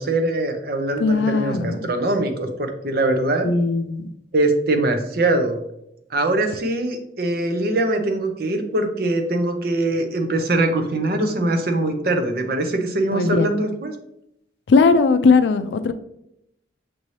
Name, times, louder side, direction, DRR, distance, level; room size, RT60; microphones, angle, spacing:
voice 1, 0.0-3.5 4.3-5.6 6.1-13.9, right 2 dB, 55° right, 5 dB, 0.6 m, -22 dB
voice 2, 1.0-1.9 3.4-4.1 13.1-13.5 14.7-15.9, left 4 dB, 70° left, 10 dB, 0.3 m, -18 dB
6.0 x 2.7 x 3.2 m, 0.78 s
head